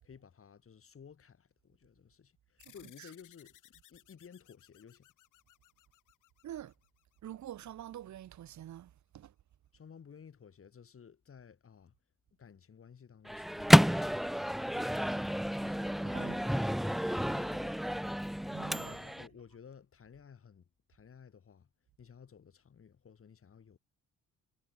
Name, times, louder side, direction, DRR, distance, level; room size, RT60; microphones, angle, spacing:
voice 1, 0.0-3.6 3.9-5.1 9.7-11.9 12.4-14.3 15.6-16.7 17.2-17.9 18.8-21.7 22.0-23.8, left 7 dB, 45° left, 6.8 m, -55 dB
sound 1, 2.6-7.5, left 15 dB, 85° left, 5.2 m, -62 dB
voice 2, 2.7-3.1 6.4-6.7 7.2-9.3 16.0-16.5 18.4-19.2, right 11 dB, 70° right, 2.6 m, -47 dB
Microwave oven, 13.3-19.3, equal, ahead, 0.4 m, -29 dB
cardioid pair, 90°, 30 cm